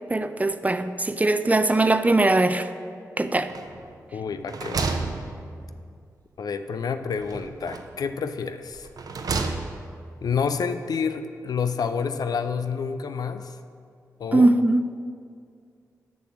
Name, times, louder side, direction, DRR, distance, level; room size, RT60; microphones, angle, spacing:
voice 1, 0.1-2.7 3.2-3.5 14.3-14.8, right 2 dB, 20° right, 10 dB, 0.5 m, -20 dB
sound 1, 3.5-4.0 4.3-5.9 7.2-8.0 8.7-10.0, right 4 dB, 65° right, 0.7 m, -31 dB
voice 2, 4.1-4.9 6.4-8.9 10.2-13.5 14.2-14.5, left 6 dB, 70° left, 10 dB, 0.4 m, -28 dB
7.0 x 6.2 x 6.1 m, 2.3 s
supercardioid pair, 40°, 7 cm